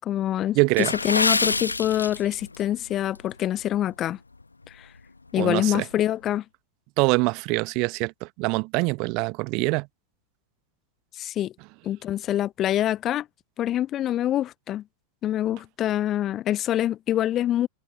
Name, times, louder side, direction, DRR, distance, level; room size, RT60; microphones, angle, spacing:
voice 1, 0.0-4.2 4.7-4.9 5.3-6.4 11.1-11.5 11.8-13.3 13.6-14.8 15.2-17.7, left 12 dB, 30° left, 1.0 m, -25 dB
voice 2, 0.5-0.9 5.4-5.8 7.0-9.9, right 28 dB, 45° right, 1.1 m, -24 dB
Water / Splash splatter, 0.7-2.6 2.9-3.2 3.7-3.9 4.4-4.5, left 3 dB, 80° left, 1.4 m, -26 dB
figure-of-eight pair, 90°, 0 cm